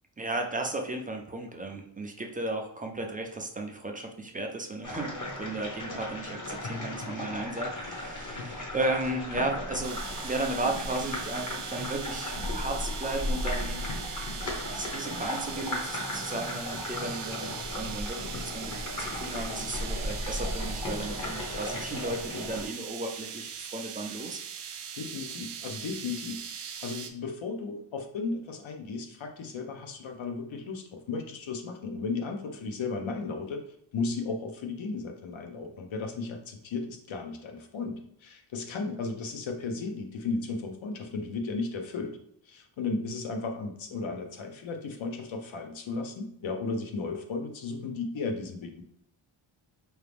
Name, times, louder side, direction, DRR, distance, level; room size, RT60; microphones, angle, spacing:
voice 1, 0.2-13.8 14.7-18.7 19.0-24.4, right 2 dB, 20° right, 2 dB, 0.3 m, -35 dB
sound 1, 4.8-22.7, left 1 dB, 40° left, 1.0 m, -36 dB
sound 2, 9.8-27.1, right 7 dB, 80° right, 0.7 m, -40 dB
voice 2, 24.9-33.6 33.9-42.2 42.4-48.8, left 4 dB, 65° left, 4 dB, 0.9 m, -35 dB
4.6 x 2.5 x 3.4 m, 0.72 s
wide cardioid pair, 175°, 50 cm